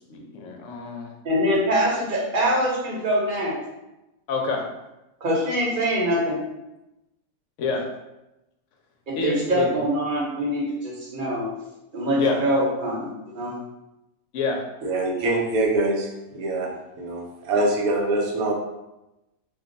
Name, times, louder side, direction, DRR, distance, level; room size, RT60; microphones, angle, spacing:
voice 1, 0.1-1.1 4.3-4.6 7.6-7.9 9.2-9.7 12.2-12.4 14.3-14.6, left 4 dB, 65° left, 1 dB, 0.9 m, -27 dB
voice 2, 1.2-3.5 5.2-6.4 9.1-11.5 11.9-13.1 13.3-13.5, equal, 40° right, -4 dB, 0.9 m, -24 dB
voice 3, 14.8-16.7 17.0-18.5, right 2 dB, 80° right, 0 dB, 1.1 m, -24 dB
2.6 x 2.2 x 3.8 m, 0.95 s
omnidirectional pair, 1.5 m